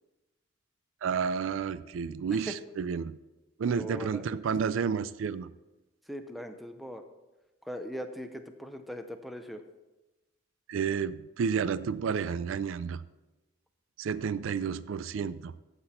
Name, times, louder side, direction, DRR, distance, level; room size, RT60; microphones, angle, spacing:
voice 1, 1.0-3.2 3.6-5.5 10.7-13.0 14.0-15.5, right 6 dB, 75° right, 16 dB, 0.4 m, -31 dB
voice 2, 3.6-4.4 6.1-7.0 7.6-9.6, equal, ahead, 7 dB, 0.6 m, -40 dB
15.5 x 6.0 x 4.2 m, 1.1 s
head